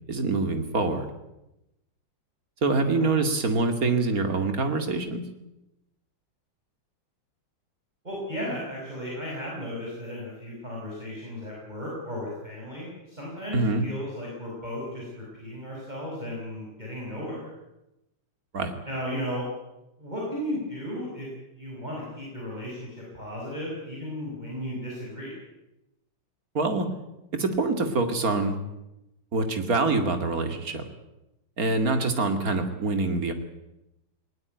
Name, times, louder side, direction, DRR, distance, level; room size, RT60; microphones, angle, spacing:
voice 1, 0.1-1.1 2.6-5.2 13.5-13.8 18.5-18.7 26.5-26.9 27.3-28.6 29.3-30.8 31.6-33.3, right 3 dB, 45° right, 6 dB, 2.7 m, -25 dB
voice 2, 8.0-17.5 18.9-19.5 20.0-21.3 21.5-25.4, equal, 20° right, -4 dB, 5.9 m, -35 dB
19.5 x 19.5 x 9.3 m, 0.92 s
omnidirectional pair, 2.3 m